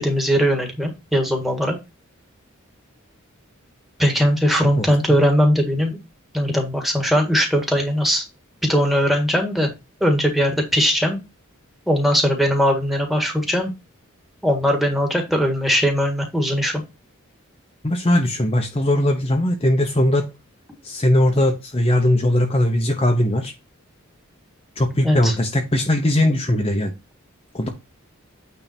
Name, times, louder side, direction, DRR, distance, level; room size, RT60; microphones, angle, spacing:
voice 1, 0.0-1.8 4.0-6.0 6.3-8.2 8.6-9.7 10.0-11.2 11.9-13.7 14.4-16.8 25.0-25.3, equal, ahead, 3 dB, 1.7 m, -19 dB
voice 2, 17.8-20.3 20.8-23.5 24.8-26.9 27.5-27.7, left 1 dB, 30° left, 3 dB, 0.9 m, -19 dB
8.9 x 3.6 x 4.4 m, 0.25 s
head